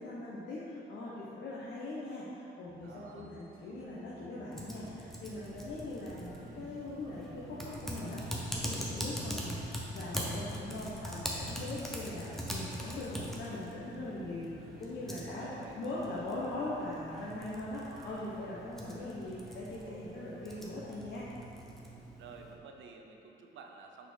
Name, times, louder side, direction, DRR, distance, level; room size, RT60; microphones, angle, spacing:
voice 1, 0.0-21.2, left 2 dB, 65° left, -7 dB, 0.9 m, -41 dB
sound 1, 2.7-20.6, right 2 dB, 45° right, 1.2 m, -54 dB
voice 2, 2.8-3.3 15.3-15.8 22.2-24.1, right 5 dB, 75° right, 3 dB, 0.6 m, -51 dB
Typing, 4.5-22.5, equal, ahead, 0.9 m, -42 dB
5.5 x 4.3 x 4.4 m, 2.9 s
cardioid pair, 90°, 20 cm